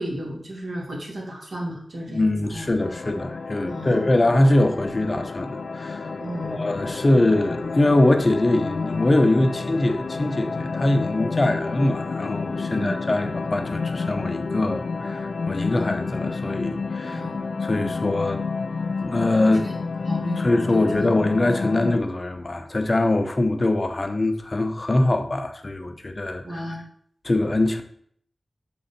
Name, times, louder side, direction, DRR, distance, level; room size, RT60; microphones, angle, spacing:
voice 1, 0.0-2.7 3.7-4.2 6.2-6.7 12.8-12.9 17.1-17.3 19.6-21.1 26.4-26.8, equal, 65° right, 2.2 m, -34 dB
voice 2, 2.1-6.1 6.4-17.2 17.6-18.4 19.0-19.7 20.4-26.8 27.2-27.8, left 1 dB, 40° left, 0.7 m, -23 dB
sound 1, 2.8-22.0, left 4 dB, 80° left, 0.5 m, -30 dB
6.2 x 3.8 x 5.7 m
wide cardioid pair, 60°, 0 cm